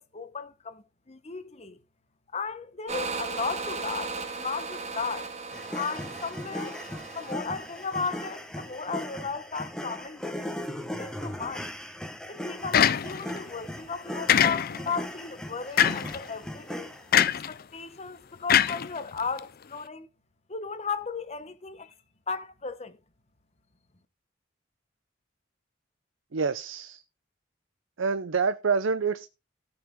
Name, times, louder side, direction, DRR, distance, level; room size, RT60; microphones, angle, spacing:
voice 1, 0.0-1.8 2.3-5.3 5.7-6.8 7.1-10.5 10.8-11.7 12.3-16.9 17.3-20.1 20.5-21.9 22.3-23.0, left 5 dB, 35° left, 1.1 m, -35 dB
sound 1, 2.9-8.3, right 4 dB, 35° right, 1.3 m, -37 dB
sound 2, 5.5-17.3, equal, 5° left, 1.2 m, -38 dB
sound 3, 12.7-13.4 14.3-15.0 15.8-16.2 17.1-17.5 18.5-19.4, left 9 dB, 50° left, 0.5 m, -22 dB
voice 2, 26.3-27.0 28.0-29.3, right 5 dB, 80° right, 0.6 m, -27 dB
17.5 x 5.8 x 3.6 m
head